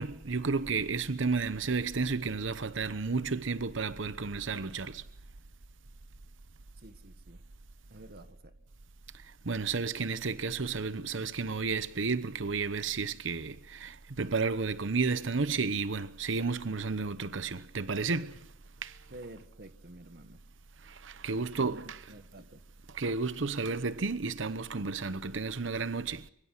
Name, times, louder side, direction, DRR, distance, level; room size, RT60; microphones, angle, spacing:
voice 1, 0.0-5.1 9.1-18.5 18.8-19.0 20.8-22.1 22.9-26.3, right 4 dB, 65° right, 0.9 m, -32 dB
voice 2, 6.8-7.4 7.9-8.5 19.1-20.4 21.4-22.6, right 1 dB, 50° right, 1.5 m, -50 dB
24.5 x 23.0 x 6.1 m
head